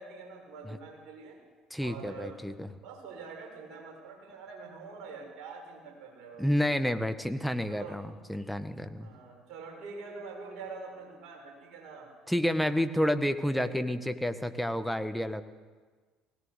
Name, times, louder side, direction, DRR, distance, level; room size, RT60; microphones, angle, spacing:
voice 1, 0.0-1.4 1.8-2.4 2.8-6.5 7.7-8.0 9.0-12.1 13.5-13.7, right 4 dB, 55° right, 1 dB, 6.9 m, -45 dB
voice 2, 1.7-2.7 6.4-9.1 12.3-15.4, equal, ahead, 9 dB, 1.6 m, -30 dB
20.0 x 17.5 x 8.3 m, 1.4 s
figure-of-eight pair, 55°, 0 cm